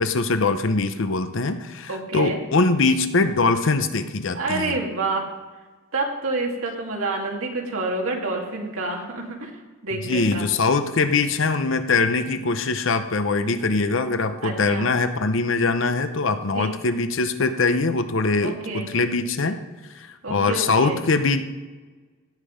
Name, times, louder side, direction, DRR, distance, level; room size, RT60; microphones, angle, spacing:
voice 1, 0.0-4.8 10.0-19.6 19.9-21.4, left 3 dB, 60° left, 10 dB, 0.7 m, -22 dB
voice 2, 1.9-2.4 4.3-5.2 5.9-9.5 9.8-10.5 14.4-14.9 16.4-16.7 18.4-18.9 20.2-21.0, right 3 dB, 75° right, 0 dB, 2.2 m, -28 dB
17.0 x 7.5 x 5.1 m, 1.3 s
head